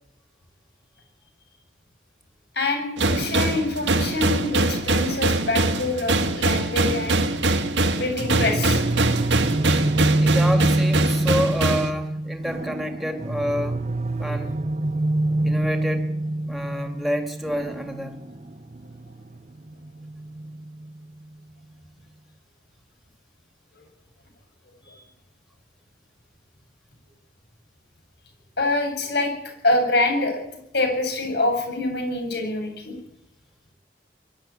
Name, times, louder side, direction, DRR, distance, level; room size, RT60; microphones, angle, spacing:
voice 1, 2.5-7.2 8.0-8.8 14.2-14.4 24.8-25.0 28.6-30.4 30.7-33.0, left 2 dB, 65° left, 5 dB, 7.5 m, -25 dB
sound 1, 3.0-11.9, right 2 dB, 85° right, 1.8 m, -23 dB
sound 2, 8.2-21.0, right 2 dB, 40° right, 0.8 m, -26 dB
voice 2, 10.2-13.8 14.2-14.5 15.4-16.1 16.5-18.2, equal, ahead, 5 dB, 2.2 m, -28 dB
22.5 x 12.0 x 9.8 m, 0.80 s
head